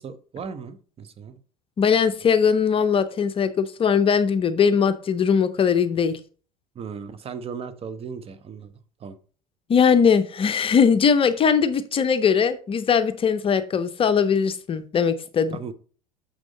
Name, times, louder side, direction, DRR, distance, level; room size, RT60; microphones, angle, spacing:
voice 1, 0.0-1.4 6.7-8.7 9.0-9.1 15.5-15.7, right 6 dB, 30° right, 12 dB, 0.9 m, -36 dB
voice 2, 1.8-6.2 9.7-15.6, left 6 dB, 30° left, 11 dB, 0.6 m, -20 dB
6.5 x 6.2 x 4.0 m, 0.40 s
figure-of-eight pair, 70°, 19 cm